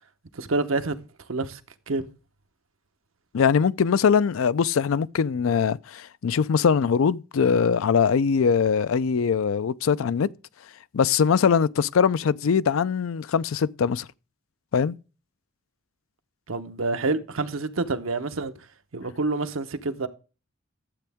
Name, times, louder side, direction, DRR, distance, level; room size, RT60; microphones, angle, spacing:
voice 1, 0.3-1.0 1.3-1.6 1.9-2.1 16.5-18.7 18.9-20.1, right 3 dB, 80° right, 1.0 m, -27 dB
voice 2, 3.3-10.3 10.9-14.1 14.7-15.0, left 6 dB, 80° left, 0.4 m, -22 dB
12.0 x 7.9 x 3.5 m
head